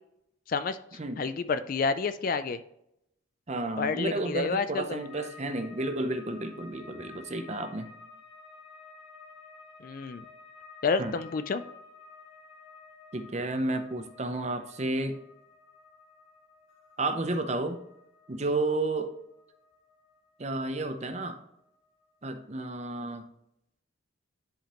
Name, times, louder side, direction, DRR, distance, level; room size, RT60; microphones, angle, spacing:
voice 1, 1.2-2.6 3.8-5.0 9.8-10.2 10.8-11.6, left 4 dB, 45° left, 12 dB, 0.3 m, -29 dB
voice 2, 3.5-7.9 11.0-11.1 13.1-15.2 17.0-17.8 18.3-19.1 20.4-21.4 22.2-23.2, right 2 dB, 35° right, 7 dB, 0.6 m, -31 dB
sound 1, 5.0-22.1 22.4-23.1, left 4 dB, 90° left, 1.5 m, -53 dB
10.0 x 5.0 x 3.0 m, 0.79 s
head